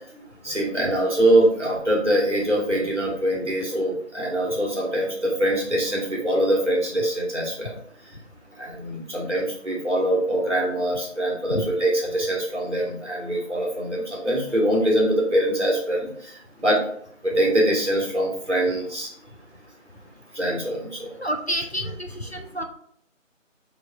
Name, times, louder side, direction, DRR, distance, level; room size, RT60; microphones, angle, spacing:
voice 1, 0.4-7.7 8.6-16.8 17.2-19.1 20.3-21.1, right 1 dB, 60° right, -3 dB, 1.5 m, -23 dB
voice 2, 21.2-22.6, equal, 55° left, 4 dB, 0.4 m, -29 dB
4.2 x 3.1 x 2.3 m, 0.64 s
figure-of-eight pair, 180°, 39 cm